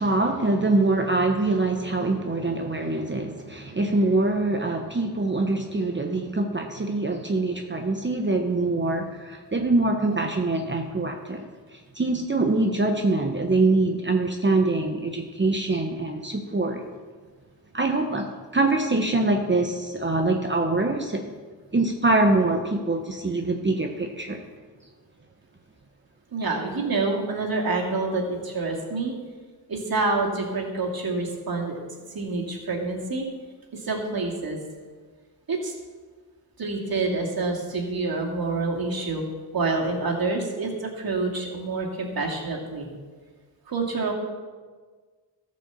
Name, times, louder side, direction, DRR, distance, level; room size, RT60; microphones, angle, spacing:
voice 1, 0.0-11.4 11.7-16.8 17.7-21.2 21.7-24.4, right 2 dB, 25° right, 3 dB, 1.0 m, -24 dB
voice 2, 26.3-29.2 29.7-31.8 32.1-33.3 33.7-34.6 35.5-35.7 36.6-39.2 39.5-42.9 43.7-44.1, right 3 dB, 55° right, -1 dB, 2.5 m, -27 dB
13.5 x 5.4 x 6.9 m, 1.5 s
cardioid pair, 75°, 42 cm